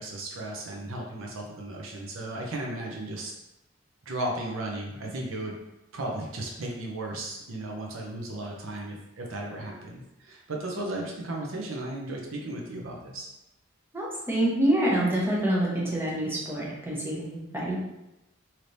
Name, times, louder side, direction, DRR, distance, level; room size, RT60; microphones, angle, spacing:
voice 1, 0.0-3.3 4.0-5.5 5.9-13.3, right 1 dB, 80° right, -1 dB, 0.6 m, -35 dB
voice 2, 13.9-17.8, right 1 dB, 10° right, -5 dB, 0.8 m, -26 dB
3.2 x 2.9 x 2.6 m, 0.92 s
head